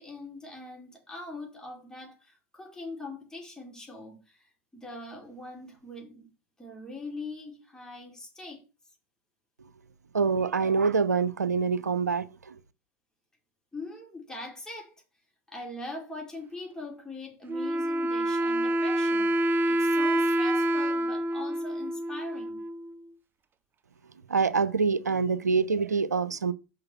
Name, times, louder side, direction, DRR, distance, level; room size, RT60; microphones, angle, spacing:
voice 1, 0.0-6.3 6.6-8.6 13.7-14.9 15.5-22.6, left 2 dB, 5° left, 4.7 m, -42 dB
voice 2, 10.1-12.6 24.3-26.5, right 5 dB, 90° right, 0.6 m, -25 dB
Wind instrument woodwind instrument, 17.5-23.0, right 1 dB, 25° right, 0.7 m, -27 dB
6.7 x 5.8 x 7.0 m
hypercardioid pair, 95°, 9 cm